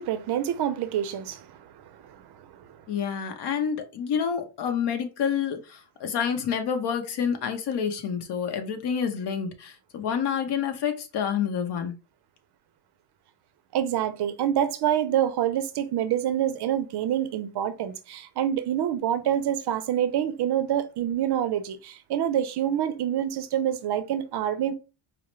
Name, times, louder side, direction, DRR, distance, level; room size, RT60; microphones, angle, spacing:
voice 1, 0.0-2.8 13.7-24.7, right 10 dB, 55° right, 0.6 m, -27 dB
voice 2, 2.9-11.9, left 7 dB, 55° left, 0.9 m, -28 dB
4.8 x 2.0 x 3.0 m
cardioid pair, 115°, 49 cm